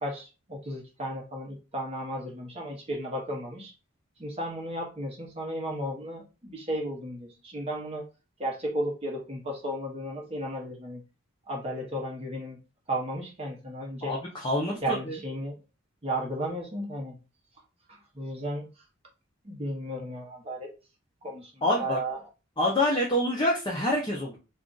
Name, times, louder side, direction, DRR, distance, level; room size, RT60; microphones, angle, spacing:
voice 1, 0.0-3.7 4.2-8.1 8.4-11.0 11.5-12.6 12.9-14.2 14.8-15.5 16.0-17.2 18.1-18.7 19.4-20.7 21.2-22.2, right 1 dB, 30° right, -1 dB, 0.8 m, -34 dB
voice 2, 14.0-15.2 21.6-22.0 22.6-24.4, left 1 dB, 20° left, -3 dB, 0.6 m, -26 dB
2.5 x 2.3 x 3.8 m, 0.30 s
head